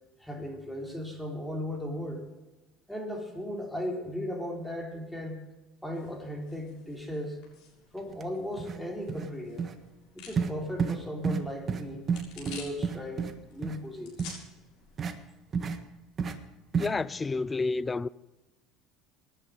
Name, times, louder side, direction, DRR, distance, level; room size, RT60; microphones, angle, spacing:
voice 1, 0.2-2.3 2.9-5.5 5.8-7.4 7.9-9.7 10.1-12.0 12.4-14.3, left 1 dB, 5° left, 3.9 m, -36 dB
sound 1, 5.8-15.0, left 5 dB, 65° left, 6.9 m, -52 dB
sound 2, 8.1-8.2 8.6-8.8 9.1-9.3 9.6-9.7 10.4-10.5 10.8-11.0 11.2-11.4 11.7-11.8 12.1-13.3 13.6-13.8 14.2-14.3 15.0-15.1 15.5-15.8 16.2-16.3 16.7-16.9, right 6 dB, 35° right, 1.6 m, -30 dB
voice 2, 16.7-18.1, left 3 dB, 20° left, 0.5 m, -30 dB
18.0 x 11.5 x 5.2 m
hypercardioid pair, 85°, 0 cm